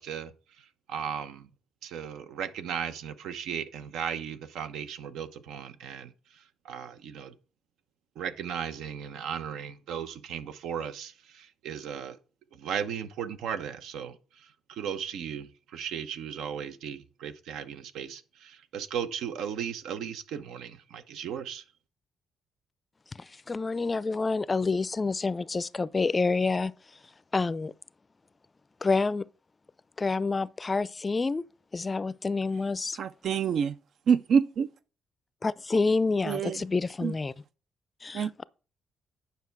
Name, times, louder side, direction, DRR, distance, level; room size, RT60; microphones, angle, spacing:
voice 1, 0.0-1.5 1.8-7.3 8.2-12.2 12.5-21.6, right 8 dB, 85° right, 0.9 m, -36 dB
voice 2, 23.2-26.7 27.3-27.7 28.8-29.3 30.0-31.4 31.7-33.0 35.4-37.3 38.0-38.4, left 4 dB, 25° left, 0.4 m, -28 dB
voice 3, 33.0-33.8 34.1-34.7 36.2-36.6 37.0-37.1 38.1-38.4, right 7 dB, 65° right, 0.4 m, -26 dB
9.4 x 5.7 x 4.6 m
cardioid pair, 90°, 0 cm